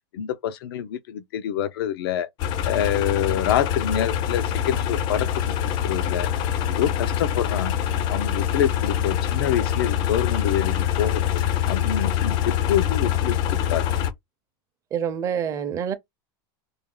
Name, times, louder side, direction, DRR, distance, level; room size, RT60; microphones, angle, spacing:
voice 1, 0.1-2.3 2.6-5.6 5.8-6.3 6.7-7.8 8.1-11.4 11.7-13.9, left 10 dB, 85° left, 0.6 m, -26 dB
sound 1, 2.4-14.1, left 10 dB, 40° left, 0.5 m, -24 dB
voice 2, 14.9-15.9, right 8 dB, 25° right, 0.6 m, -26 dB
3.3 x 2.3 x 3.8 m
supercardioid pair, 155°, 12 cm